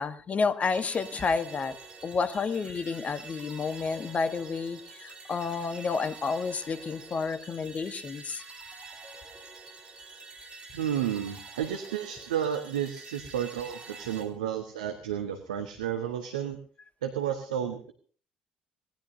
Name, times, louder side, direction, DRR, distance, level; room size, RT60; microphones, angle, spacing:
voice 1, 0.0-1.8 2.0-8.4, left 5 dB, 35° left, 12 dB, 1.3 m, -30 dB
sound 1, 0.6-14.2, right 3 dB, 25° right, 4.7 m, -47 dB
voice 2, 10.7-16.6 17.0-17.9, right 9 dB, 70° right, 7 dB, 1.1 m, -32 dB
25.5 x 18.0 x 2.7 m, 0.43 s
figure-of-eight pair, 50°, 4 cm